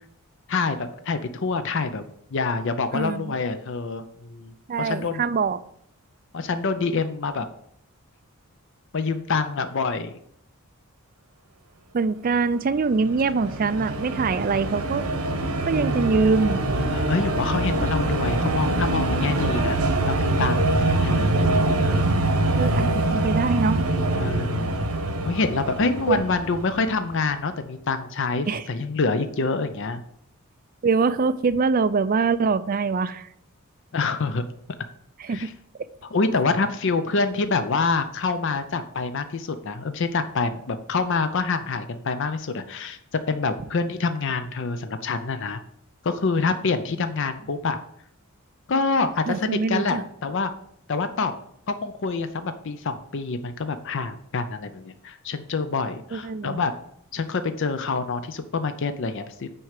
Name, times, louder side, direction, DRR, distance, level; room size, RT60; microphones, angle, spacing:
voice 1, 0.5-4.5 4.8-5.2 6.3-7.5 8.9-10.1 16.9-19.8 20.0-21.4 24.2-24.8 25.2-30.0 33.9-34.4 35.3-35.5 36.1-43.0 43.3-45.6 46.0-47.8 48.7-50.5 50.9-51.3 51.7-56.7 57.1-59.5, left 4 dB, 55° left, 10 dB, 0.5 m, -26 dB
voice 2, 2.9-3.3 4.7-5.6 11.9-15.0 15.7-16.6 22.6-23.9 26.1-26.2 28.5-28.7 30.8-33.3 35.2-35.5 49.3-50.0 56.1-56.6, right 4 dB, 40° right, 13 dB, 0.4 m, -23 dB
sound 1, 12.7-27.2, right 2 dB, 80° right, 1.1 m, -24 dB
6.3 x 4.6 x 6.6 m, 0.69 s
head